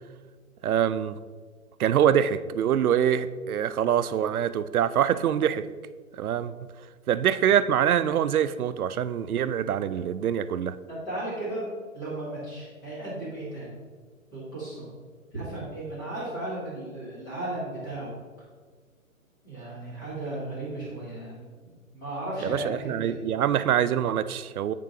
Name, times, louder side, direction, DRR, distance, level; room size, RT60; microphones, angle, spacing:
voice 1, 0.6-1.2 1.8-5.7 6.1-6.5 7.1-10.8 22.4-24.7, right 9 dB, 85° right, 14 dB, 0.5 m, -24 dB
voice 2, 10.9-11.7 11.9-13.8 14.3-14.9 15.3-18.2 19.4-21.5 21.9-23.3, right 1 dB, 15° left, -9 dB, 1.3 m, -35 dB
8.5 x 3.7 x 3.7 m, 1.5 s
hypercardioid pair, 180°, 43 cm